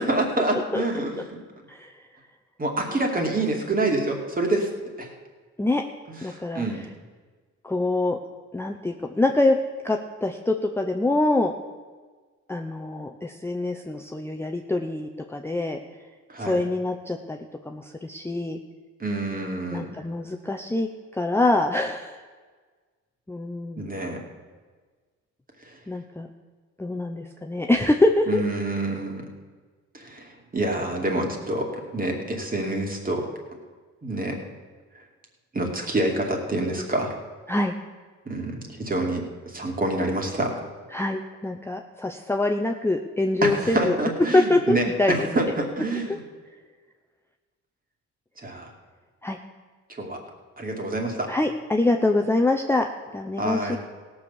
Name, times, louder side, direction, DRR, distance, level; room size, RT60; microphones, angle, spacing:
voice 1, 0.0-1.4 2.6-4.7 5.0-5.1 6.1-6.9 16.3-16.6 19.0-19.9 23.8-24.2 25.7-25.8 28.3-29.3 29.9-33.3 34.0-34.4 35.5-37.1 38.3-40.6 43.4-46.2 48.4-48.7 49.9-50.2 50.6-51.3 53.4-53.8, right 2 dB, 30° right, 1 dB, 2.6 m, -27 dB
voice 2, 6.2-6.6 7.6-8.2 8.5-9.6 9.8-11.5 12.5-15.8 16.4-17.4 17.6-18.6 19.7-22.1 23.3-23.9 25.9-26.3 26.8-28.4 37.5-37.7 40.9-44.0 44.3-45.3 49.2-49.4 51.3-52.9 53.1-53.8, left 2 dB, 10° left, 3 dB, 0.7 m, -24 dB
16.5 x 6.4 x 7.2 m, 1.4 s
cardioid pair, 90°, 30 cm